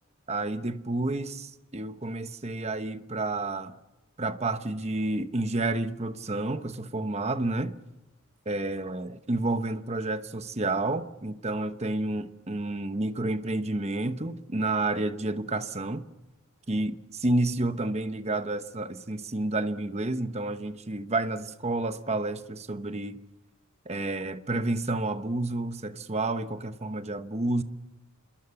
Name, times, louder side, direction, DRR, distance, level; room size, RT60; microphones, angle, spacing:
voice 1, 0.3-3.7 4.2-7.8 8.5-16.1 16.7-23.2 23.9-27.6, right 2 dB, 30° right, 1.0 m, -30 dB
27.0 x 22.0 x 7.0 m
head